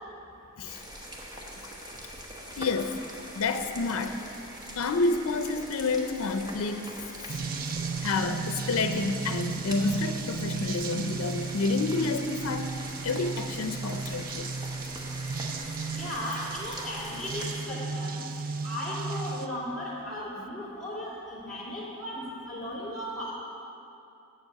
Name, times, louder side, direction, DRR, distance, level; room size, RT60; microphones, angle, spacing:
sound 1, 0.7-17.7, equal, 20° right, 0.9 m, -43 dB
voice 1, 2.6-3.0 3.3-4.2 4.7-7.0 8.0-14.5, left 3 dB, 85° left, 8 dB, 0.5 m, -29 dB
sound 2, 7.3-19.5, right 4 dB, 40° right, 0.4 m, -35 dB
voice 2, 15.9-18.2 18.6-23.3, left 1 dB, ahead, -9 dB, 2.0 m, -36 dB
7.3 x 6.8 x 7.6 m, 2.7 s
head